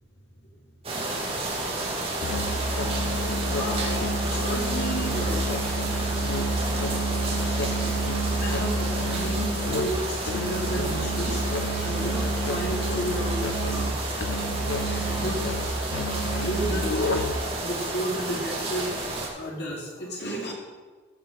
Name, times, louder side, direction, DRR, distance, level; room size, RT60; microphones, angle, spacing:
sound 1, 0.8-19.3, right 2 dB, 30° right, 1.9 m, -31 dB
Musical instrument, 2.2-17.5, right 1 dB, 80° left, 1.0 m, -29 dB
voice 1, 3.5-5.5 7.3-7.6 7.9-14.2 15.1-15.5 15.9-16.0 16.3-17.3 17.6-18.9 19.3-20.5, right 1 dB, 60° left, -2 dB, 2.9 m, -33 dB
15.0 x 6.1 x 5.4 m, 1.4 s
head